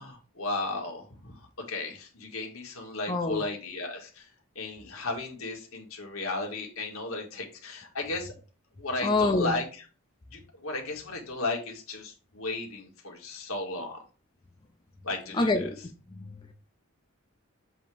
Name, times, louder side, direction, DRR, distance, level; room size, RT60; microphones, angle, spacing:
voice 1, 0.0-1.4 1.7-4.3 4.6-8.3 8.8-9.8 10.3-14.0 15.0-15.7, left 2 dB, 80° left, 1.8 m, -35 dB
voice 2, 3.1-3.4 9.0-9.6 15.3-15.8 16.1-16.3, left 2 dB, 20° left, 0.6 m, -26 dB
7.7 x 2.9 x 4.8 m
head